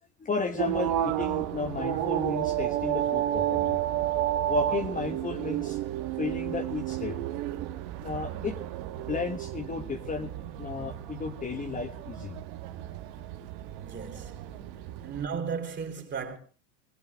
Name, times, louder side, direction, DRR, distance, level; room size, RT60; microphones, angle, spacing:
voice 1, 0.2-3.8 4.5-5.8 6.2-7.2 8.0-8.6 8.9-10.3 10.6-12.3, left 4 dB, 15° left, 1.5 m, -33 dB
sound 1, 0.6-15.3, right 13 dB, 55° right, 1.8 m, -32 dB
voice 2, 13.8-14.5 15.0-16.4, right 6 dB, 25° right, 3.9 m, -35 dB
21.0 x 16.5 x 3.6 m
supercardioid pair, 130°, 45 cm